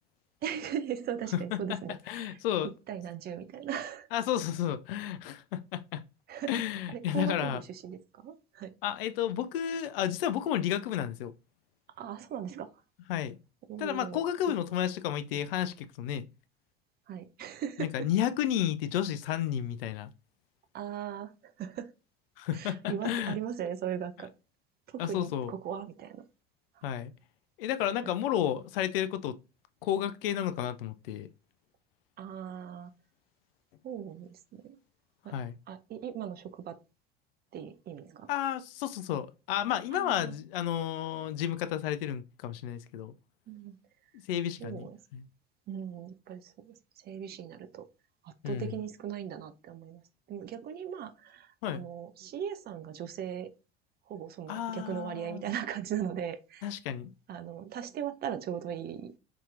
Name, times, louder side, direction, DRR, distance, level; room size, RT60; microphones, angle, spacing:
voice 1, 0.4-4.1 6.3-6.5 6.9-8.7 12.0-12.7 13.7-14.2 17.1-17.9 20.7-21.9 22.5-24.3 24.9-26.2 26.8-26.9 28.0-28.1 32.2-32.9 33.8-34.8 35.2-35.3 35.7-36.8 37.5-38.3 39.9-40.4 43.5-43.8 44.6-45.0 45.7-47.9 48.2-50.0 50.3-53.5 54.1-56.7 57.3-59.1, right 9 dB, 35° right, 0.5 m, -38 dB
voice 2, 2.1-2.7 4.1-6.0 6.5-7.6 8.8-11.3 13.1-13.4 13.8-16.3 17.8-20.1 22.4-23.4 25.0-25.5 26.8-27.1 27.6-29.4 29.8-31.3 35.3-35.6 38.3-43.1 44.3-45.3 48.4-48.7 51.6-51.8 54.5-55.4 56.6-57.1, left 10 dB, 70° left, 0.4 m, -32 dB
4.8 x 2.8 x 2.4 m
figure-of-eight pair, 65°, 30 cm